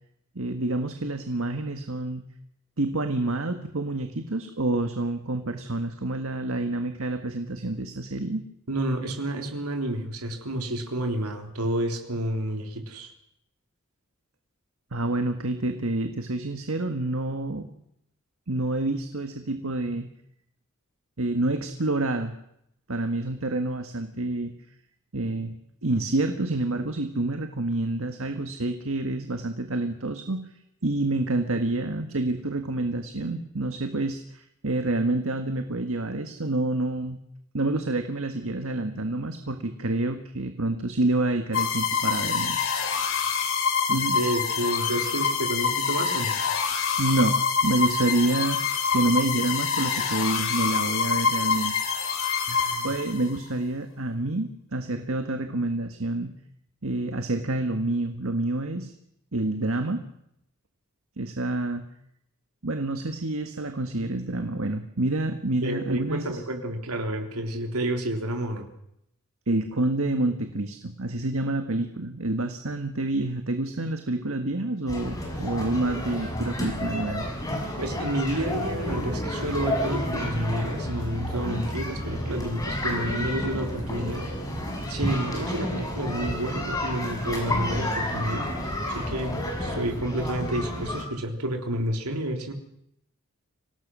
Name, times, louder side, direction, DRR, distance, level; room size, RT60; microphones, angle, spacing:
voice 1, 0.4-2.2 2.8-8.4 14.9-17.7 18.5-20.1 21.2-22.3 22.9-24.5 25.1-25.5 25.8-30.5 30.8-37.2 37.5-42.6 43.9-44.2 47.0-48.6 48.9-51.7 52.8-56.3 56.8-58.9 59.3-60.0 61.2-61.8 62.6-66.4 69.5-77.3, right 2 dB, 70° right, 6 dB, 1.7 m, -28 dB
voice 2, 8.7-13.1 43.9-46.4 52.5-52.9 65.6-68.7 77.8-84.3 84.9-88.5 88.9-92.5, right 1 dB, 90° right, 4 dB, 3.5 m, -30 dB
sound 1, 41.5-53.4, left 6 dB, 65° left, 3.9 m, -26 dB
sound 2, 74.9-91.0, left 1 dB, 15° left, 6.4 m, -30 dB
26.0 x 18.5 x 6.3 m, 0.76 s
head